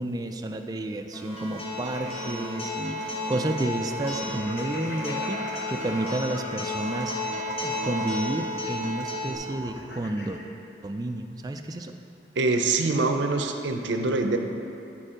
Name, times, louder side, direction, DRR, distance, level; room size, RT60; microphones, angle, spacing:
voice 1, 0.0-7.1 7.6-10.4 10.8-12.0, right 1 dB, 20° right, 5 dB, 0.3 m, -31 dB
Alarm, 1.1-9.1, right 1 dB, 5° left, 1.3 m, -41 dB
Acoustic guitar, 1.4-9.3, left 2 dB, 30° left, 1.0 m, -33 dB
sound 1, 1.8-10.4, left 1 dB, 70° left, 0.9 m, -41 dB
voice 2, 12.4-14.4, right 3 dB, 80° right, 5 dB, 0.6 m, -24 dB
9.7 x 4.3 x 4.9 m, 2.8 s
head